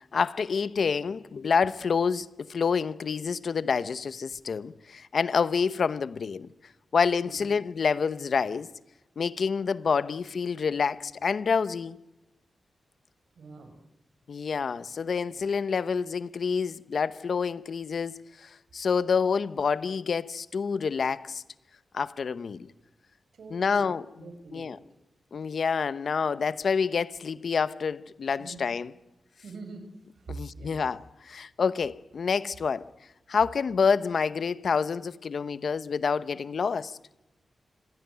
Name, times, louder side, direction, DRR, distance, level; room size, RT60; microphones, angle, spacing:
voice 1, 0.1-6.5 6.9-8.7 9.2-12.0 14.3-21.4 21.9-22.7 23.5-24.0 24.5-24.8 25.3-28.9 30.3-32.9 33.3-37.0, left 5 dB, 60° left, 0.9 m, -28 dB
voice 2, 7.2-7.5 13.4-13.8 15.3-15.4 23.3-23.9 24.2-24.8 28.4-28.7 29.4-29.8 30.1-30.8, right 3 dB, 70° right, 5.5 m, -44 dB
26.0 x 16.5 x 9.3 m
wide cardioid pair, 95°, 0 cm